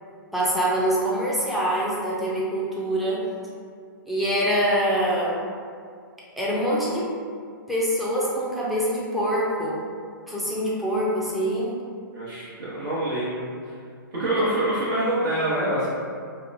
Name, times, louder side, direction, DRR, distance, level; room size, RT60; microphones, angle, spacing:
voice 1, 0.3-3.2 4.1-5.4 6.4-7.2 7.7-9.8 10.3-11.8 14.3-14.4, equal, ahead, -7 dB, 0.4 m, -24 dB
voice 2, 12.1-13.5 14.1-15.9, right 1 dB, 65° right, -10 dB, 0.9 m, -25 dB
2.8 x 2.2 x 2.5 m, 2.1 s
hypercardioid pair, 140°, 12 cm